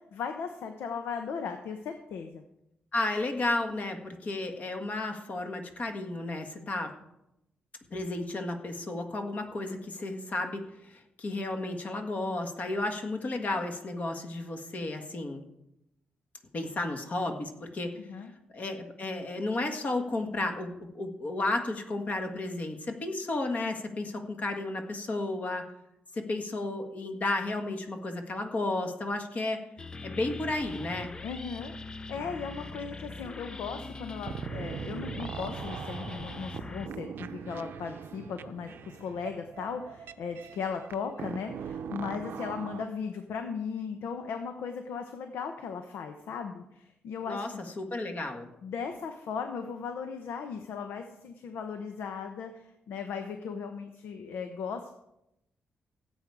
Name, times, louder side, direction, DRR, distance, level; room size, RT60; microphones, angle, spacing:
voice 1, 0.1-2.4 18.0-18.3 31.2-47.6 48.6-54.9, left 6 dB, 90° left, 6 dB, 1.0 m, -37 dB
voice 2, 2.9-6.9 7.9-15.4 16.5-18.0 18.5-25.6 26.1-29.6 30.0-31.1 47.3-48.5, left 2 dB, 40° left, 5 dB, 1.7 m, -33 dB
sound 1, 29.8-36.9, left 3 dB, 20° left, 0.5 m, -42 dB
sound 2, 34.3-42.9, right 7 dB, 70° right, 0.6 m, -41 dB
16.5 x 8.3 x 4.9 m, 0.86 s
cardioid pair, 135°, 4 cm